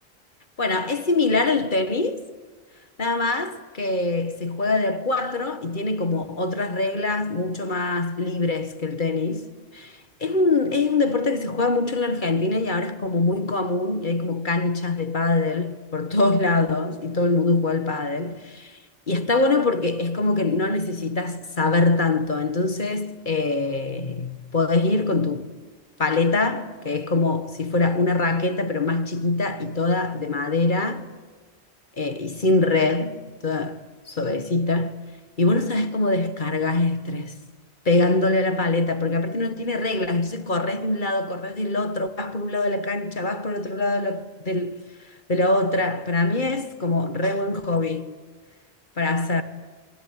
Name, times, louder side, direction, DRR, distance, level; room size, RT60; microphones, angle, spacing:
voice 1, 0.6-2.2 3.0-18.8 19.1-25.5 26.0-31.1 32.0-35.0 35.4-37.4 37.8-44.8 45.3-48.2 49.0-49.4, left 2 dB, 50° left, 1.7 m, -24 dB
27.0 x 23.0 x 9.6 m
omnidirectional pair, 1.1 m